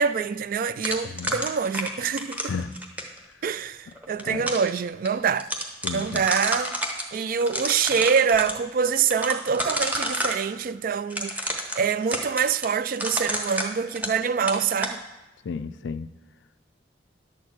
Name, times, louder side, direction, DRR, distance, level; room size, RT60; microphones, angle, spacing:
voice 1, 0.0-2.5 3.4-5.5 5.9-6.8 7.1-11.4 11.8-15.0, right 6 dB, 50° right, 0.3 m, -25 dB
sound 1, 0.8-3.2 4.0-4.7 5.1-5.2 5.4-7.0 7.4-8.5 9.1-10.4 11.1-14.2 14.5-15.0, right 1 dB, 10° right, 0.9 m, -29 dB
voice 2, 1.0-1.4 2.5-2.8 4.2-4.5 5.8-6.3 15.4-16.1, left 5 dB, 85° left, 0.4 m, -33 dB
11.0 x 4.5 x 7.5 m
head